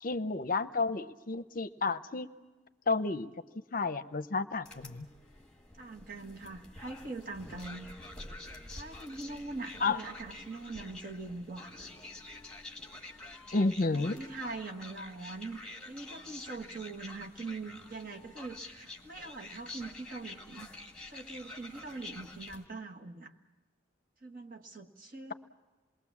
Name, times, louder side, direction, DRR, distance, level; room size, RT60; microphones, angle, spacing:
voice 1, 0.0-2.3 2.9-3.3 3.7-5.1 9.8-10.0 13.5-14.2, left 3 dB, 40° left, 11 dB, 0.7 m, -31 dB
sound 1, 4.6-22.7, left 2 dB, 5° left, 1.7 m, -48 dB
voice 2, 5.8-7.9 8.7-11.9 13.9-15.6 15.8-20.7 21.1-23.3 24.2-25.3, right 3 dB, 45° right, 1 dB, 1.5 m, -42 dB
27.5 x 21.0 x 7.2 m, 1.2 s
head